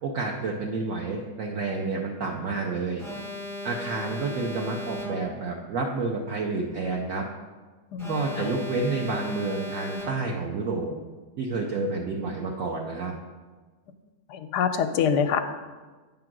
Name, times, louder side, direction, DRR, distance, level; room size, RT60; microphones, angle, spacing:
voice 1, 0.0-3.0 3.6-7.3 8.1-10.9 11.4-13.1, right 3 dB, 60° right, 0 dB, 1.0 m, -29 dB
Alarm, 3.0-5.5 8.0-10.5, left 2 dB, ahead, 0.6 m, -37 dB
voice 2, 7.9-8.4 14.3-15.5, left 7 dB, 80° left, 8 dB, 1.2 m, -25 dB
8.9 x 3.7 x 5.9 m, 1.3 s
omnidirectional pair, 1.8 m